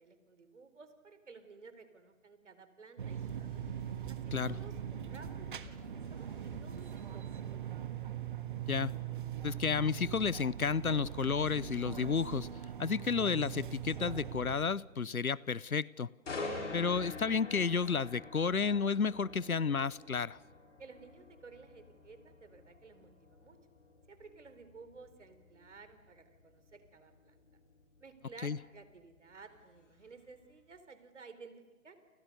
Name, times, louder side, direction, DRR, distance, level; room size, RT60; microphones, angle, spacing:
voice 1, 0.0-3.5 4.1-7.6 20.8-23.6 24.1-27.4 28.0-32.0, right 4 dB, 55° right, 10 dB, 4.1 m, -55 dB
sound 1, 3.0-14.6, right 9 dB, 35° right, 1.6 m, -41 dB
sound 2, 3.3-7.1, left 5 dB, 10° left, 4.1 m, -55 dB
voice 2, 9.4-12.5 12.8-16.1 16.7-20.4 28.4-28.6, left 5 dB, 85° left, 24 dB, 0.9 m, -31 dB
sound 3, 16.3-30.1 30.5-30.8, left 3 dB, 55° left, 6.6 m, -47 dB
29.0 x 29.0 x 6.7 m, 1.1 s
figure-of-eight pair, 145°, 42 cm